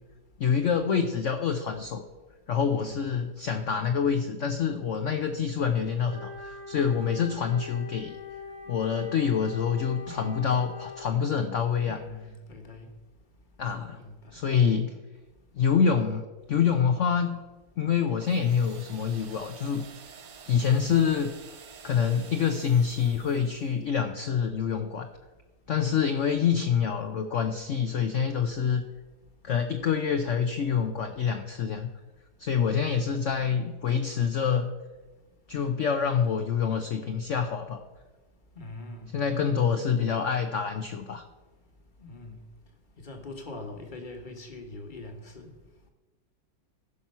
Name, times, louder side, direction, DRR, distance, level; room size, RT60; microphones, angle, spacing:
voice 1, 0.4-2.0 2.5-8.2 8.7-12.0 13.6-14.0 14.3-14.9 15.5-16.2 16.5-17.4 17.8-19.8 20.5-21.3 21.8-25.1 25.7-28.8 29.4-31.9 32.4-34.7 35.5-37.8 39.1-41.2, left 7 dB, 65° left, 6 dB, 0.8 m, -26 dB
Wind instrument woodwind instrument, 6.0-11.2, left 4 dB, 85° left, 2.9 m, -43 dB
voice 2, 10.0-10.4 11.8-12.9 14.0-14.4 32.7-33.2 38.6-39.2 42.0-42.4 43.0-45.5, left 2 dB, 30° left, 3 dB, 1.3 m, -42 dB
sound 1, 18.2-23.8, right 6 dB, 80° right, 1.8 m, -49 dB
15.0 x 5.9 x 5.5 m, 1.2 s
omnidirectional pair, 2.0 m